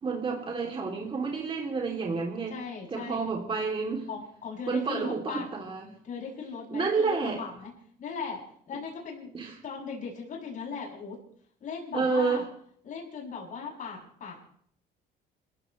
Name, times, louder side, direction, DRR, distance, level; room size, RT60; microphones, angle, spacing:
voice 1, 0.0-2.5 2.9-4.0 4.7-5.9 6.7-7.4 9.3-9.5 11.9-12.4, right 4 dB, 30° right, 0 dB, 2.9 m, -29 dB
voice 2, 2.5-3.2 4.1-5.5 6.0-7.7 8.0-11.2 11.6-12.5 12.8-14.4, left 5 dB, 50° left, -2 dB, 7.4 m, -38 dB
28.0 x 16.0 x 3.3 m, 0.62 s
cardioid pair, 110°, 17 cm